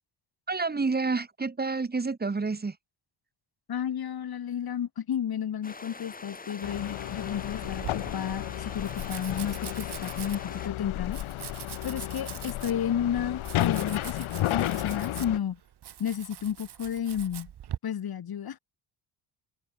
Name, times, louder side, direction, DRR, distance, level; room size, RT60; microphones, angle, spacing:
voice 1, 0.5-2.8, right 4 dB, 20° right, 4.3 m, -29 dB
voice 2, 3.7-11.2 11.8-14.2 14.5-15.6 16.0-17.5 17.8-18.6, left 9 dB, 50° left, 7.3 m, -32 dB
sound 1, 5.6-10.7, left 3 dB, 20° left, 4.4 m, -44 dB
sound 2, 6.6-15.4, left 14 dB, 90° left, 6.0 m, -33 dB
Domestic sounds home sounds, 7.6-17.8, right 10 dB, 55° right, 3.3 m, -43 dB
cardioid pair, 145°, 47 cm